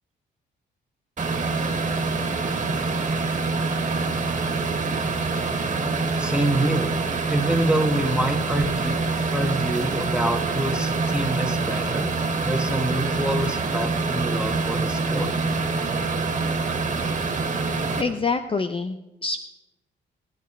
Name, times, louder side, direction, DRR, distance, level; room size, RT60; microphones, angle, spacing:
sound 1, 1.2-18.0, right 3 dB, 40° right, 2.2 m, -25 dB
voice 1, 6.2-6.9 7.3-9.0 9.3-12.1 12.4-15.3, right 1 dB, 5° right, 4 dB, 1.7 m, -26 dB
voice 2, 18.0-19.4, left 4 dB, 25° left, 8 dB, 0.7 m, -26 dB
22.5 x 9.3 x 3.3 m, 0.99 s
cardioid pair, 90°, 20 cm